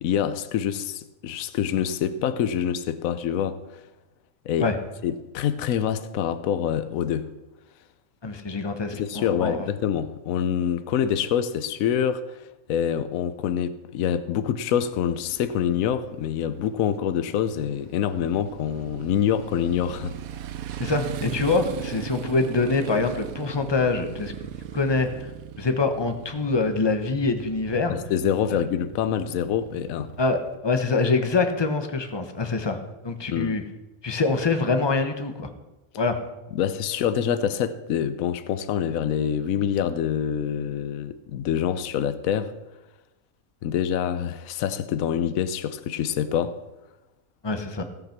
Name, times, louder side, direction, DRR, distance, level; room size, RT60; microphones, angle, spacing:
voice 1, 0.0-3.8 4.4-4.7 5.0-7.3 8.9-20.2 27.9-30.1 33.3-33.6 36.5-42.5 43.6-46.6, left 9 dB, 80° left, 1.0 m, -26 dB
voice 2, 8.2-9.7 20.8-24.3 24.7-25.3 25.6-28.0 28.5-28.6 30.2-32.8 33.0-33.6 34.0-35.5 36.0-36.2 47.4-47.8, left 3 dB, 20° left, 0.9 m, -25 dB
Motorcycle, 14.8-30.6, right 10 dB, 90° right, 1.1 m, -38 dB
17.0 x 5.9 x 5.9 m
omnidirectional pair, 1.4 m